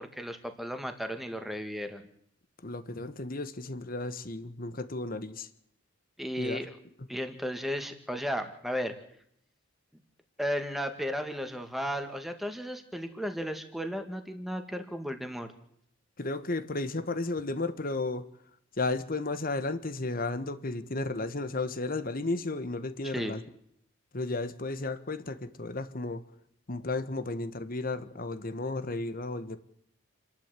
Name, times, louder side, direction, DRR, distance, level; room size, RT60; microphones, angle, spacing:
voice 1, 0.0-2.0 6.2-6.8 7.1-8.9 10.4-15.5 23.0-23.3, equal, ahead, 6 dB, 2.0 m, -34 dB
voice 2, 2.6-5.5 6.4-6.6 16.2-18.3 18.8-23.4 24.1-26.2 26.7-29.6, left 2 dB, 40° left, 12 dB, 1.3 m, -33 dB
28.5 x 11.5 x 8.4 m, 0.72 s
head